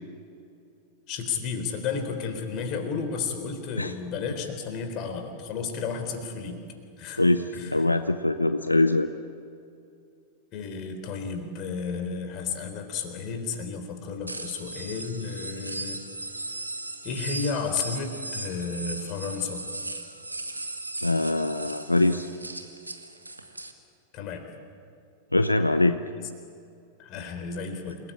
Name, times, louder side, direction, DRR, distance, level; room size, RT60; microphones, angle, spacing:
voice 1, 1.1-6.6 7.0-7.2 7.5-7.9 10.5-16.0 17.0-19.6 24.1-24.5 26.2-26.3 27.0-28.0, left 5 dB, 40° left, 6 dB, 3.8 m, -32 dB
voice 2, 7.2-9.1 21.0-22.3 25.3-26.0, left 2 dB, 85° left, 10 dB, 0.7 m, -23 dB
sound 1, 14.3-23.7, right 2 dB, 85° right, 1.8 m, -37 dB
28.5 x 19.0 x 8.7 m, 2.5 s
figure-of-eight pair, 90°, 0 cm